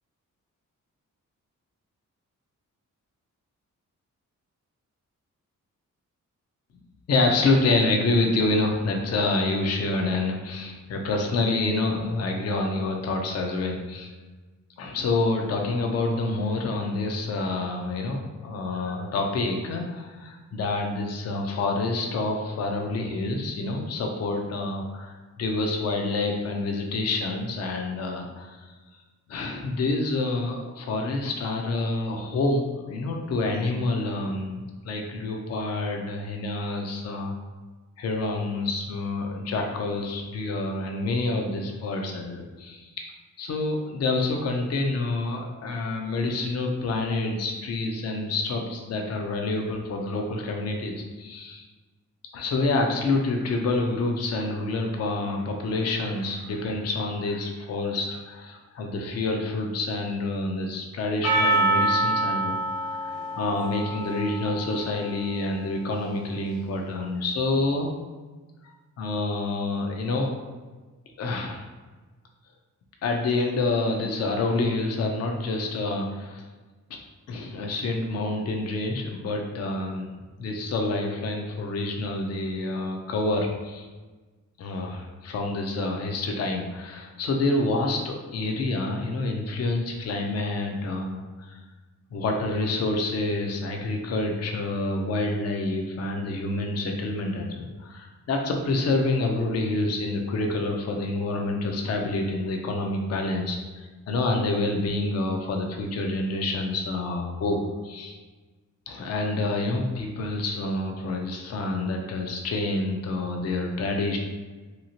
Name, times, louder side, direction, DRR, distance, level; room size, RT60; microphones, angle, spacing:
voice 1, 7.1-14.1 14.8-28.7 29.3-37.3 38.0-42.9 43.4-51.7 52.3-62.6 63.4-67.9 69.0-70.3 71.2-71.7 73.0-76.4 76.9-77.0 77.3-80.1 80.4-83.9 84.6-91.6 92.1-108.1 108.9-114.2, left 2 dB, 55° left, 2 dB, 0.5 m, -27 dB
Percussion, 61.2-65.5, right 2 dB, 80° left, 1.1 m, -26 dB
2.9 x 2.8 x 2.7 m, 1.3 s
wide cardioid pair, 130°, 31 cm